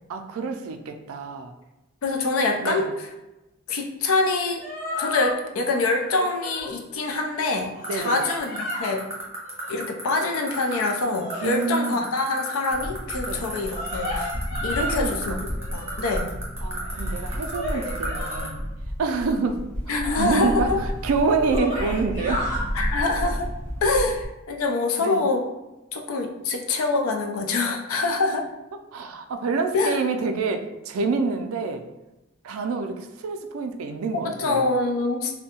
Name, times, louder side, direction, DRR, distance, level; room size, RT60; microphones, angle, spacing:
voice 1, 0.1-1.5 2.6-2.8 7.9-8.2 11.4-12.0 13.2-13.4 14.8-15.4 16.6-18.6 19.0-22.5 25.0-25.2 28.9-31.8 32.4-34.7, right 4 dB, 90° right, 6 dB, 0.3 m, -27 dB
voice 2, 2.0-2.9 3.7-4.6 5.0-9.1 9.7-14.3 14.6-15.4 15.7-16.3 19.9-20.8 22.7-23.5 23.8-25.4 25.9-28.5 29.7-30.0 34.2-35.4, left 3 dB, 85° left, 3 dB, 0.4 m, -25 dB
sound 1, 4.3-4.4 4.6-5.3 6.0-6.7 7.3-9.0 9.4-9.9 10.6-12.0 13.4-15.1 15.6-16.1 16.8-18.5 20.0-20.3 20.9-21.0 21.3-22.6 23.2-23.4, left 1 dB, 35° left, 0.8 m, -33 dB
sound 2, 7.8-18.5, right 4 dB, 15° right, 0.7 m, -34 dB
sound 3, 12.7-24.3, equal, 5° left, 0.4 m, -32 dB
2.6 x 2.1 x 2.8 m, 0.99 s
head